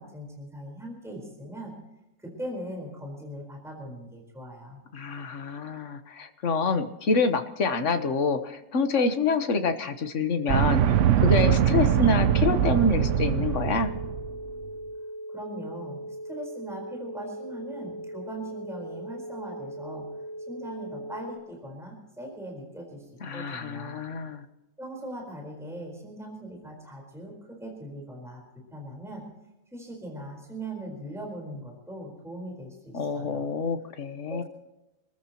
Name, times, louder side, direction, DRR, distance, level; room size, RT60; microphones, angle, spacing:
voice 1, 0.0-1.7 2.2-4.8 15.3-20.0 20.5-23.0 23.3-24.0 24.8-28.4 28.7-29.2 29.7-33.5 34.3-34.4, right 1 dB, ahead, 0 dB, 4.4 m, -40 dB
voice 2, 4.9-10.8 11.2-13.9 23.2-24.4 32.9-34.4, left 3 dB, 45° left, 8 dB, 1.4 m, -26 dB
sound 1, 10.5-14.4, right 10 dB, 70° right, 0.7 m, -22 dB
sound 2, 11.3-21.4, right 1 dB, 85° right, 2.0 m, -39 dB
28.0 x 14.0 x 3.0 m, 0.98 s
omnidirectional pair, 2.0 m